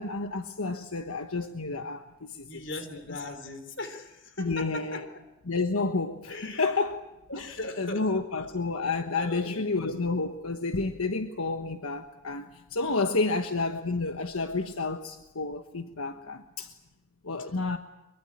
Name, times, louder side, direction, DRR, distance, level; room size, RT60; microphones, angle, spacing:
voice 1, 0.0-2.6 4.4-5.1 5.5-7.0 7.3-16.7 17.2-17.8, left 3 dB, 80° left, 1.3 m, -30 dB
voice 2, 2.5-5.0 6.3-6.7 7.3-8.0 9.2-10.0 12.8-13.0, left 2 dB, 55° left, 3.8 m, -39 dB
23.5 x 23.0 x 8.8 m
head